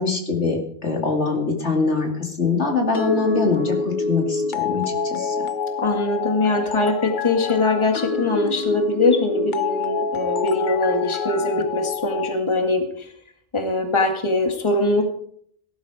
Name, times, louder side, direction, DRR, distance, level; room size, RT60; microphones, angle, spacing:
voice 1, 0.0-5.3, left 4 dB, 65° left, 2 dB, 2.7 m, -23 dB
sound 1, 2.9-12.3, left 5 dB, 45° left, 1.0 m, -26 dB
voice 2, 5.8-13.1 13.5-15.0, left 2 dB, 25° left, 4 dB, 1.9 m, -22 dB
17.5 x 12.0 x 4.8 m, 0.64 s
omnidirectional pair, 1.3 m